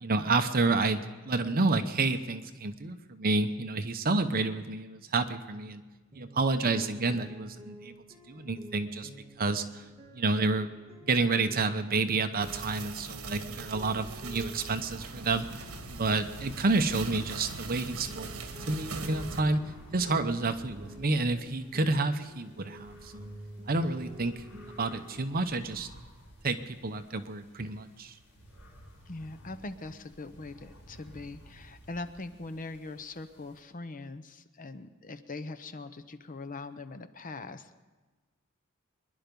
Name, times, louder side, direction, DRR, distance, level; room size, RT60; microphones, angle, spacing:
voice 1, 0.0-5.8 6.1-7.9 8.3-9.1 9.4-9.8 10.1-10.7 11.0-18.3 18.7-19.6 19.9-23.1 23.7-24.3 24.7-25.9 26.4-28.1, right 3 dB, 45° right, 9 dB, 0.9 m, -29 dB
sound 1, 6.1-25.5, equal, 30° right, 1.8 m, -49 dB
sound 2, 12.4-19.4, right 4 dB, 75° right, 1.4 m, -42 dB
sound 3, 14.0-33.6, equal, 85° left, 5.7 m, -53 dB
voice 2, 29.1-37.8, left 3 dB, 40° left, 11 dB, 0.7 m, -42 dB
23.5 x 11.0 x 5.3 m, 1.2 s
head